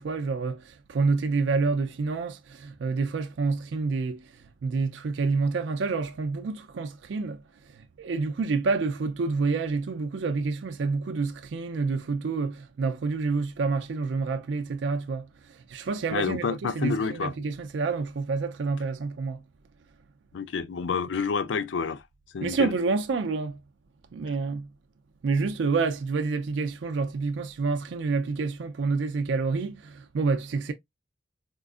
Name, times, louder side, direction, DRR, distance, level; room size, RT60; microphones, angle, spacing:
voice 1, 0.0-19.4 22.4-23.6 24.1-24.7 25.2-30.7, right 4 dB, 90° right, 0.4 m, -28 dB
voice 2, 16.1-17.3 20.3-22.0 22.3-22.7, left 5 dB, 80° left, 0.4 m, -29 dB
4.4 x 2.4 x 2.4 m
head